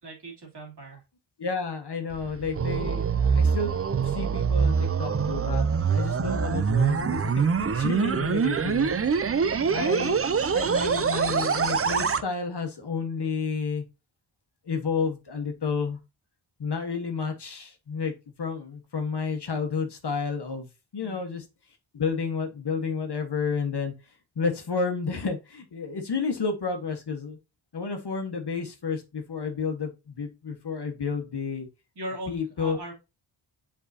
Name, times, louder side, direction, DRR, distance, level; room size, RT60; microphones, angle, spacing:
voice 1, 0.0-1.0 9.6-9.8 21.0-21.3 31.9-32.9, right 1 dB, 55° right, -1 dB, 2.8 m, -39 dB
voice 2, 1.4-3.7 4.0-9.2 9.7-13.8 14.6-16.0 16.6-18.1 18.4-20.7 20.9-21.4 21.9-23.9 24.3-27.4 27.7-31.7 32.3-32.8, left 5 dB, 50° left, 5 dB, 1.4 m, -31 dB
sound 1, 2.1-12.2, right 6 dB, 30° right, 0.5 m, -24 dB
7.3 x 4.9 x 2.7 m, 0.26 s
wide cardioid pair, 120°, 50 cm